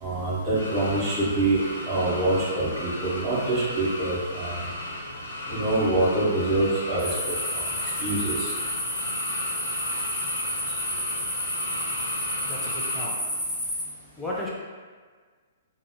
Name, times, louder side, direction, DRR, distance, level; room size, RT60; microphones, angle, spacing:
voice 1, 0.0-4.6 5.5-7.3 8.0-8.5, right 2 dB, 30° right, -8 dB, 1.1 m, -25 dB
sound 1, 0.5-13.0, left 1 dB, 75° left, 0.6 m, -35 dB
sound 2, 7.0-13.8, left 1 dB, 25° left, 1.1 m, -30 dB
voice 2, 12.4-13.2 14.2-14.5, left 1 dB, 10° left, -5 dB, 0.6 m, -34 dB
2.8 x 2.6 x 2.2 m, 1.5 s
figure-of-eight pair, 115°, 0 cm